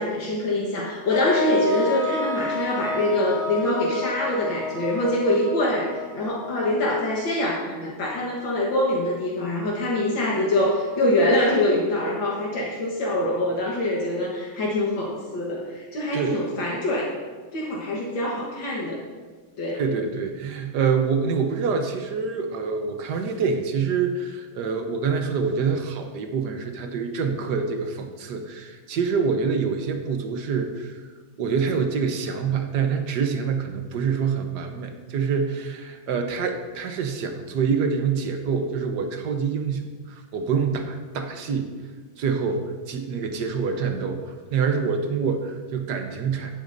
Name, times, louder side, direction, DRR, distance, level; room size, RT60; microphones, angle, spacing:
voice 1, 0.0-17.1 17.5-19.0 19.6-19.8, left 1 dB, 75° left, -4 dB, 2.1 m, -24 dB
sound 1, 1.1-7.2, left 3 dB, 45° left, 2.4 m, -30 dB
voice 2, 19.7-31.1 31.4-41.7 42.2-46.5, right 5 dB, 65° right, 5 dB, 1.4 m, -26 dB
15.5 x 8.5 x 2.6 m, 1.4 s
omnidirectional pair, 2.1 m